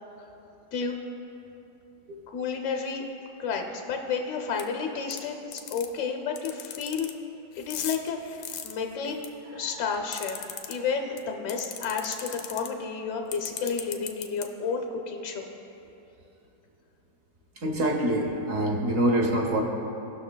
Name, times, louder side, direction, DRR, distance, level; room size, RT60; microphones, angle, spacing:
voice 1, 2.3-3.0 3.4-7.1 7.6-9.2 9.5-10.4 10.7-15.5, left 5 dB, 65° left, 3 dB, 0.7 m, -31 dB
sound 1, 4.6-4.7 5.1-5.2 5.5-5.9 6.4-7.1 7.5-9.3 9.7-10.7 11.2-11.3 11.5-12.7 13.3-14.4, left 9 dB, 85° left, 1.3 m, -36 dB
voice 2, 17.6-19.6, right 1 dB, 55° right, 1 dB, 1.0 m, -25 dB
17.5 x 6.1 x 2.2 m, 3.0 s
omnidirectional pair, 2.0 m